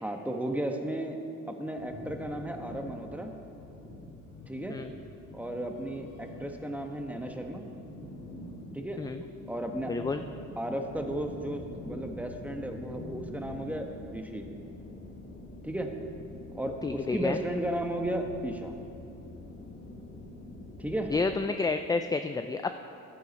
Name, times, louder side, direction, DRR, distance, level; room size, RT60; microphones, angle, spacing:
voice 1, 0.0-1.2 1.5-3.3 4.5-4.8 5.3-7.7 8.7-9.0 9.5-9.9 10.6-14.4 15.6-15.9 16.5-18.7 20.8-21.1, right 1 dB, 5° right, 4 dB, 1.1 m, -34 dB
sound 1, 1.8-13.7, left 1 dB, 80° left, 2.0 m, -46 dB
voice 2, 9.9-10.2 16.8-17.4 21.1-22.7, left 4 dB, 15° left, 8 dB, 0.3 m, -30 dB
sound 2, 10.9-21.4, left 2 dB, 50° left, 2.0 m, -46 dB
11.5 x 9.5 x 5.3 m, 2.8 s
cardioid pair, 90°, 30 cm